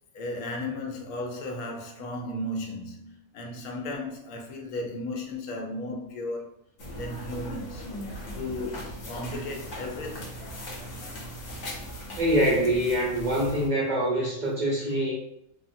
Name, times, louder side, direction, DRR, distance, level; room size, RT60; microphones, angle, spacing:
voice 1, 0.1-6.5 7.0-7.8 8.4-10.4, left 1 dB, 80° left, 1.1 m, -35 dB
sound 1, 6.8-13.7, equal, 60° left, 1.0 m, -39 dB
voice 2, 12.1-15.1, right 1 dB, 65° right, 0.4 m, -25 dB
3.4 x 2.0 x 2.6 m
omnidirectional pair, 1.6 m